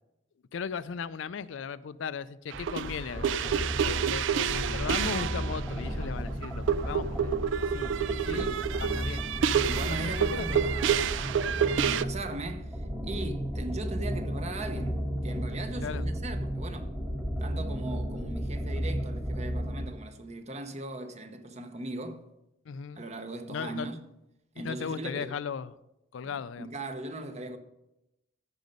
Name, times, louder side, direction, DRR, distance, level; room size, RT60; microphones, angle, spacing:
voice 1, 0.5-7.3 7.7-8.4 8.7-9.2 9.7-10.6 11.1-11.2 15.8-16.1 22.7-23.0 23.5-23.9 24.6-25.7 26.1-26.7, left 6 dB, 75° left, 0.4 m, -37 dB
sound 1, 2.5-20.0, equal, 10° right, 1.4 m, -34 dB
sound 2, 2.5-5.7 6.0-6.1 6.4-12.0, right 8 dB, 70° right, 0.3 m, -29 dB
voice 2, 8.3-8.6 9.5-16.9 17.4-22.3 22.9-24.0 24.5-25.3 26.3-27.6, right 2 dB, 35° right, 0.9 m, -39 dB
14.0 x 5.3 x 5.3 m
head